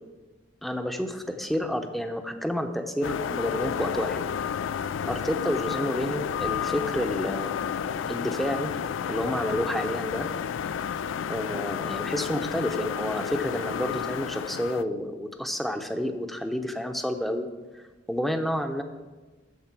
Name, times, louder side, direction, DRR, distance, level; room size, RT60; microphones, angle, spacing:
voice 1, 0.6-4.2 5.0-7.7 8.1-8.7 9.1-10.3 11.3-17.5 17.7-18.8, equal, ahead, 6 dB, 0.7 m, -30 dB
sound 1, 3.0-14.8, left 8 dB, 80° left, 0.3 m, -31 dB
13.0 x 4.3 x 7.5 m, 1.2 s
head